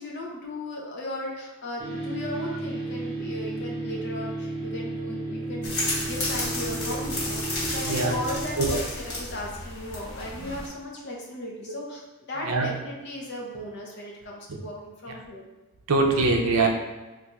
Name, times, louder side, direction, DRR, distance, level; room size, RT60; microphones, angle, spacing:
voice 1, 0.0-8.8 9.2-12.0 12.3-15.4, left 1 dB, 50° left, -2 dB, 0.6 m, -36 dB
sound 1, 1.8-8.5, right 2 dB, 25° right, 0.6 m, -33 dB
sound 2, 5.6-10.7, left 1 dB, 85° left, 1.5 m, -32 dB
voice 2, 15.9-16.7, right 3 dB, 80° right, 3 dB, 0.5 m, -23 dB
2.6 x 2.3 x 4.0 m, 1.2 s
head